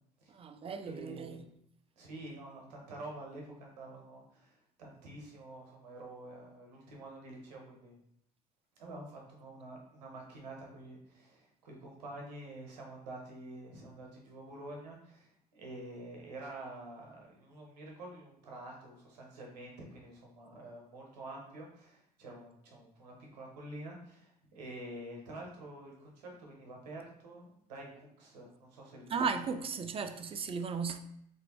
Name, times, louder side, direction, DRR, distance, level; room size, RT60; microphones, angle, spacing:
voice 1, 0.3-1.4 29.1-31.0, right 5 dB, 30° right, 0.4 m, -35 dB
voice 2, 0.9-1.4 2.0-7.9 8.8-29.0, right 1 dB, 90° right, 0.9 m, -48 dB
3.2 x 2.6 x 3.0 m
hypercardioid pair, 65°, 20 cm